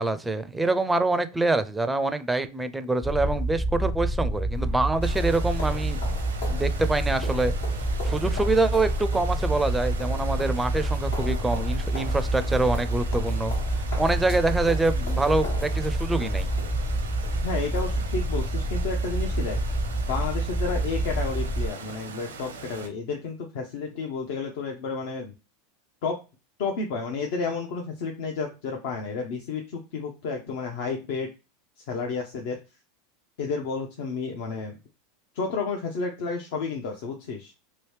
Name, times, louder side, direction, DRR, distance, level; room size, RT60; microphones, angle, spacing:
voice 1, 0.0-6.0 6.5-7.5 8.0-13.6 14.0-16.5, right 2 dB, 10° right, 0.4 m, -25 dB
sound 1, 3.0-21.7, right 1 dB, 25° left, 0.7 m, -28 dB
sound 2, 4.5-18.2, left 2 dB, 85° left, 1.4 m, -42 dB
sound 3, 5.0-22.9, right 5 dB, 90° right, 0.7 m, -41 dB
voice 2, 17.4-19.6 20.1-25.3 26.0-26.2 26.6-31.3 31.9-32.6 33.4-34.8 35.3-37.5, left 4 dB, 65° left, 0.6 m, -31 dB
3.0 x 2.7 x 3.2 m
hypercardioid pair, 90°, 0 cm